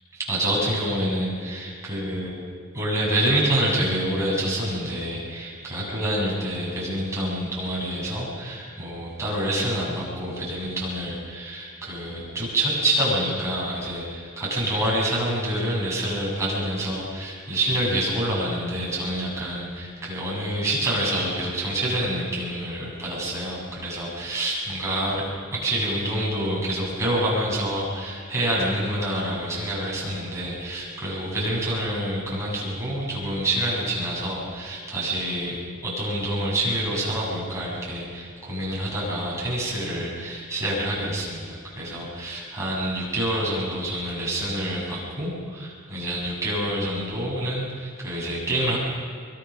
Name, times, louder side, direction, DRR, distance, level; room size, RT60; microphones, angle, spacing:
voice 1, 0.1-2.3 2.7-48.8, right 1 dB, 15° right, -5 dB, 7.7 m, -27 dB
24.5 x 23.0 x 6.5 m, 2.2 s
head